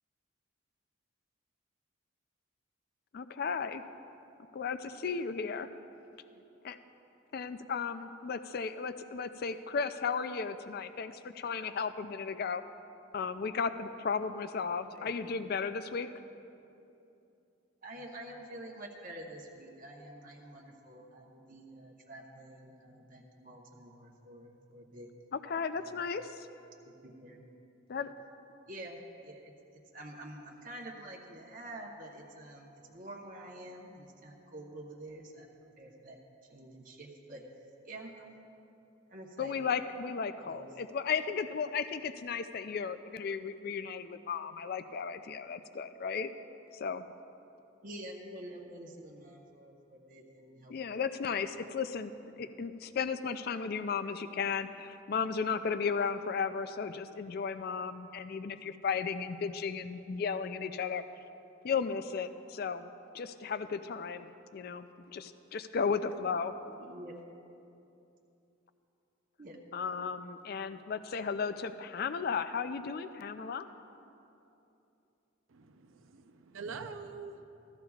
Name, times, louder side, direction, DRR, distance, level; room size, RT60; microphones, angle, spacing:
voice 1, 3.1-3.8 4.5-5.7 6.6-6.8 7.3-12.6 13.1-16.1 25.3-26.5 27.9-28.1 39.4-46.3 46.7-47.0 50.7-52.1 52.4-61.0 61.6-62.9 63.1-66.5 69.7-73.7, left 5 dB, 50° left, 11 dB, 0.4 m, -35 dB
voice 2, 14.9-15.5 17.8-25.1 25.8-26.1 26.8-27.4 27.9-28.1 28.7-35.5 35.8-36.2 36.5-37.4 37.8-38.4 39.1-39.6 40.5-40.7 47.8-51.1 66.7-67.1 69.4-69.6, right 1 dB, 40° right, -1 dB, 1.0 m, -48 dB
voice 3, 75.5-77.5, right 4 dB, 80° right, 7 dB, 0.6 m, -45 dB
16.0 x 13.5 x 2.4 m, 2.8 s
head